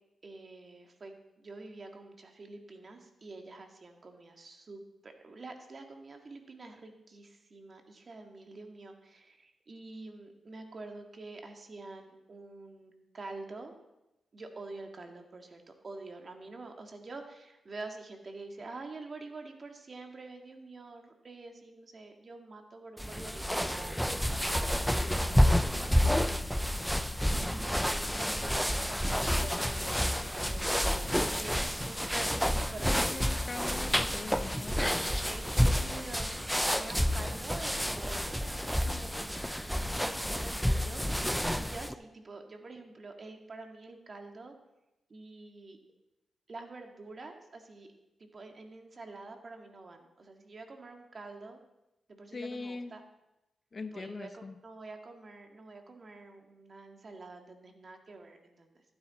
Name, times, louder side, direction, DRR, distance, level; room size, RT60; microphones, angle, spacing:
voice 1, 0.2-13.7 14.3-24.0 24.3-26.1 27.4-33.2 35.2-44.5 45.1-45.8 46.5-47.9 48.2-51.6 52.1-53.0 53.9-58.8, right 3 dB, 50° right, 4 dB, 2.1 m, -47 dB
sound 1, 23.0-41.9, equal, ahead, 0.6 m, -29 dB
voice 2, 32.8-35.1 52.3-52.9 53.7-54.6, left 3 dB, 45° left, 11 dB, 0.9 m, -41 dB
14.5 x 9.7 x 4.3 m, 0.93 s
cardioid pair, 55°, 0 cm